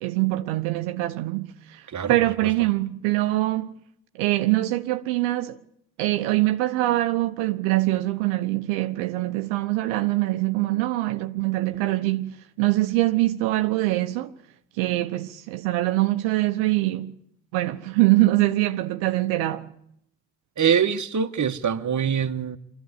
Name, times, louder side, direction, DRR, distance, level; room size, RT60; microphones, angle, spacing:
voice 1, 0.0-3.7 4.1-5.6 6.0-14.3 14.8-17.2 17.5-19.7, right 17 dB, 75° right, 1.0 m, -23 dB
voice 2, 1.9-2.5 20.6-22.6, right 7 dB, 35° right, 1.6 m, -24 dB
24.5 x 15.0 x 9.9 m
hypercardioid pair, 45°, 49 cm